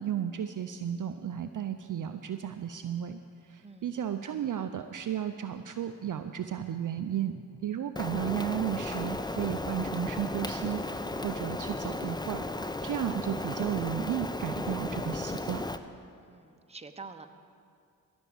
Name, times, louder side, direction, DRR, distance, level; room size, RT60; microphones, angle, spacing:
voice 1, 0.0-15.6, right 9 dB, 50° right, 9 dB, 0.6 m, -34 dB
voice 2, 4.3-4.7 16.2-17.3, right 4 dB, 15° right, 7 dB, 1.0 m, -47 dB
Rain, 8.0-15.8, left 2 dB, 10° left, 0.7 m, -35 dB
16.0 x 6.3 x 7.1 m, 2.3 s
supercardioid pair, 40°, 42 cm